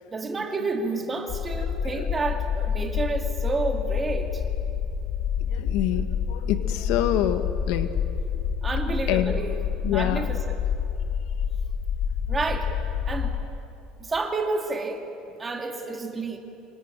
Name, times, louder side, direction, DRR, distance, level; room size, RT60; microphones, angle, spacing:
voice 1, 0.1-4.4 8.6-9.6 9.9-10.5 12.3-12.7 13.1-13.4 14.0-15.0 15.4-16.4, right 3 dB, 15° right, 3 dB, 2.2 m, -30 dB
sound 1, 1.3-13.4, left 7 dB, 45° left, 1.7 m, -28 dB
voice 2, 1.6-2.1 5.4-7.9 9.1-9.3 9.8-10.3, left 11 dB, 65° left, 8 dB, 1.6 m, -27 dB
27.0 x 24.0 x 9.0 m, 2.8 s
cardioid pair, 175°, 0 cm